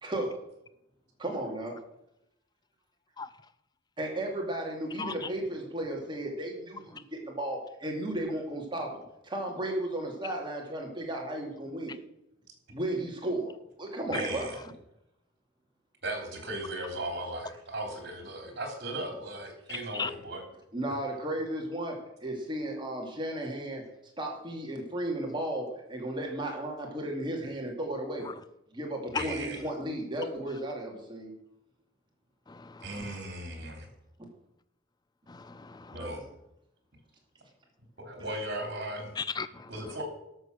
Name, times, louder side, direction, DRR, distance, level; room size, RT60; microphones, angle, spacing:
voice 1, 0.0-0.3 1.2-1.7 4.0-12.0 12.7-13.5 13.8-14.5 20.7-21.9 22.2-23.8 24.2-28.2 28.7-31.3 35.9-36.2, right 1 dB, 25° right, 0 dB, 2.3 m, -34 dB
voice 2, 14.1-14.6 16.0-20.4 29.1-29.6 32.8-33.9 35.9-36.2 38.0-39.2 39.7-40.0, right 1 dB, 55° right, 3 dB, 3.3 m, -37 dB
voice 3, 32.5-32.9 35.3-35.9 39.2-39.7, left 5 dB, 20° left, 14 dB, 0.4 m, -35 dB
12.5 x 6.7 x 6.2 m, 0.84 s
head